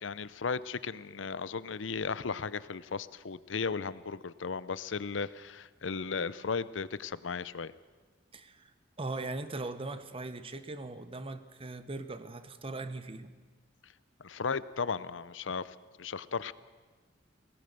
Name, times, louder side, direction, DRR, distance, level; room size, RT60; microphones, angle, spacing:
voice 1, 0.0-7.7 14.2-16.5, left 5 dB, 85° left, 17 dB, 0.7 m, -35 dB
voice 2, 8.3-8.7 9.0-13.3, right 2 dB, 30° right, 11 dB, 1.1 m, -39 dB
24.5 x 18.0 x 6.8 m, 1.4 s
head